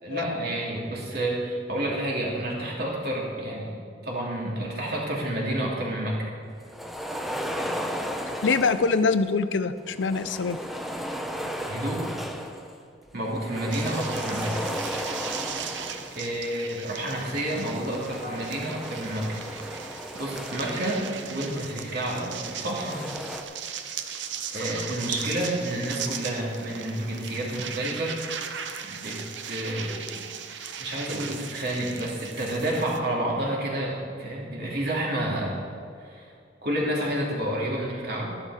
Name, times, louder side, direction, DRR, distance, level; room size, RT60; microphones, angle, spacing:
voice 1, 0.0-3.7 4.0-6.3 11.7-12.2 13.1-14.5 16.1-19.3 19.7-23.1 24.5-28.5 28.8-29.2 29.4-29.9 30.8-35.6 36.0-36.3 36.6-38.4, right 1 dB, 60° right, -3 dB, 2.8 m, -30 dB
sound 1, 6.6-9.3 9.9-12.8 13.1-16.3 17.0-21.8 22.4-23.4, equal, ahead, 0.7 m, -35 dB
voice 2, 8.4-10.6 11.4-11.5, left 4 dB, 90° left, 12 dB, 0.5 m, -24 dB
sound 2, 13.7-33.0, right 7 dB, 85° right, 0.8 m, -38 dB
12.5 x 11.0 x 4.9 m, 2.4 s
head